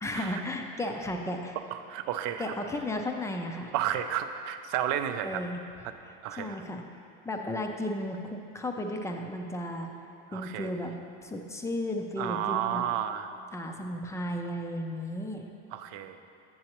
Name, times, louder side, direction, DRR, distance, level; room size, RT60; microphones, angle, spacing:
voice 1, 0.0-1.6 2.4-3.7 5.2-5.6 6.4-6.8 7.3-9.9 10.3-10.9 11.2-12.9 13.5-15.4, left 1 dB, 10° left, 3 dB, 0.4 m, -34 dB
voice 2, 1.7-2.5 3.7-5.4 6.2-6.6 10.3-10.7 12.2-13.3 15.7-16.2, right 10 dB, 65° right, 9 dB, 0.5 m, -32 dB
7.6 x 6.9 x 2.9 m, 2.7 s
supercardioid pair, 120°, 29 cm